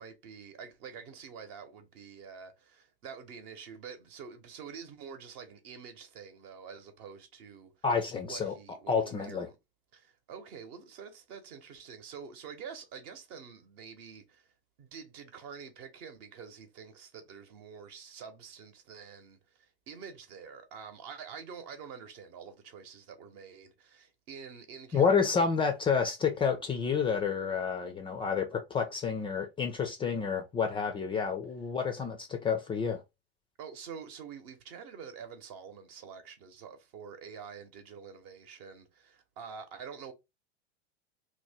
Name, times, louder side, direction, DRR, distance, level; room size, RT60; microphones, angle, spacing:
voice 1, 0.0-7.8 8.2-9.6 9.9-14.5 14.8-25.4 33.6-40.1, right 6 dB, 45° right, 1.0 m, -47 dB
voice 2, 7.8-8.5 8.9-9.5 24.9-33.0, left 6 dB, 15° left, 0.5 m, -29 dB
3.0 x 2.2 x 4.2 m
hypercardioid pair, 95°, 32 cm